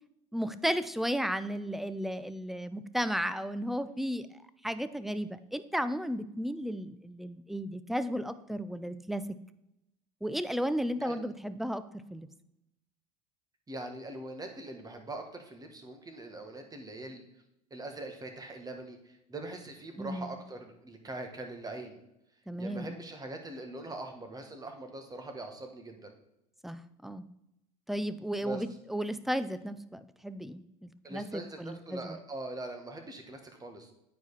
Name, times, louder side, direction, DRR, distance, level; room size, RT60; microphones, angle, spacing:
voice 1, 0.3-4.3 4.6-9.2 10.2-11.8 12.1-12.3 20.0-20.4 22.5-22.9 26.6-27.2 27.9-32.2, equal, ahead, 13 dB, 0.5 m, -34 dB
voice 2, 13.7-17.2 17.7-19.0 19.3-22.0 22.6-26.1 28.4-28.6 31.0-33.9, right 2 dB, 20° right, 5 dB, 1.6 m, -42 dB
9.3 x 4.7 x 4.1 m, 0.83 s
hypercardioid pair, 80°, 18 cm